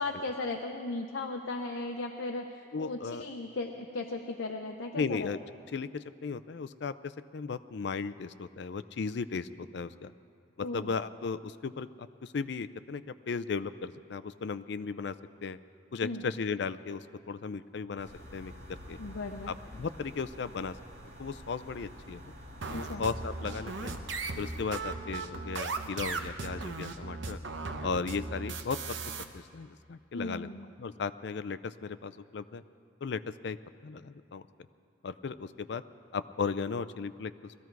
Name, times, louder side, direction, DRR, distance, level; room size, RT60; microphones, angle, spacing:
voice 1, 0.0-5.3 10.6-10.9 16.0-16.2 19.0-19.6 22.7-23.1 30.1-30.6, left 2 dB, 90° left, 3 dB, 0.7 m, -36 dB
voice 2, 2.7-3.3 5.0-5.4 5.7-10.1 10.6-15.2 15.4-15.6 15.9-19.0 19.5-20.8 21.2-22.3 22.7-23.9 24.4-27.4 27.8-28.8 29.3-30.5 30.8-32.6 33.0-33.6 33.8-34.4 35.0-35.8 36.1-37.5, left 5 dB, 65° left, 14 dB, 0.4 m, -36 dB
sound 1, 18.0-24.9, equal, 60° right, 3.1 m, -48 dB
sound 2, 22.6-29.2, right 4 dB, 75° right, 0.9 m, -37 dB
20.5 x 14.0 x 4.6 m, 2.4 s
head